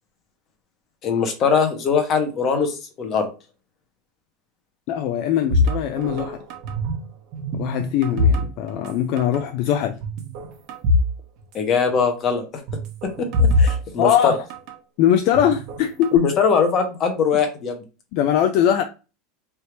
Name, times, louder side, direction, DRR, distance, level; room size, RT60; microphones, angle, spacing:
voice 1, 1.0-3.3 11.5-12.5 13.0-14.4 16.1-17.8, left 5 dB, 30° left, 1.0 m, -21 dB
voice 2, 4.9-6.4 7.6-10.0 14.0-14.4 15.0-16.2 18.1-18.8, left 10 dB, 50° left, 0.4 m, -21 dB
sound 1, 5.5-7.1 7.3-8.9 9.2-9.4 10.0-11.1 11.4-11.5 12.7-14.7 15.3-16.2, left 2 dB, 45° right, 1.1 m, -22 dB
3.4 x 2.7 x 4.5 m
supercardioid pair, 160°, 0 cm